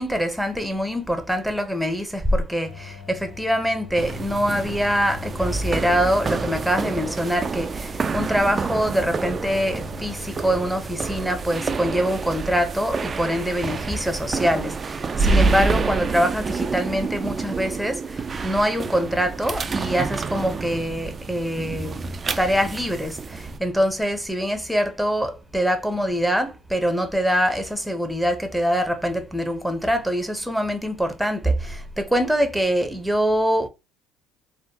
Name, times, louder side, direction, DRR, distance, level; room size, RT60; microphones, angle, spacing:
voice 1, 0.0-22.0 22.4-33.7, equal, ahead, 0.7 m, -24 dB
sound 1, 2.6-12.2, left 9 dB, 55° left, 0.5 m, -42 dB
sound 2, 4.0-23.6, right 4 dB, 35° right, 0.3 m, -28 dB
3.4 x 2.1 x 2.8 m
hypercardioid pair, 70°, 0 cm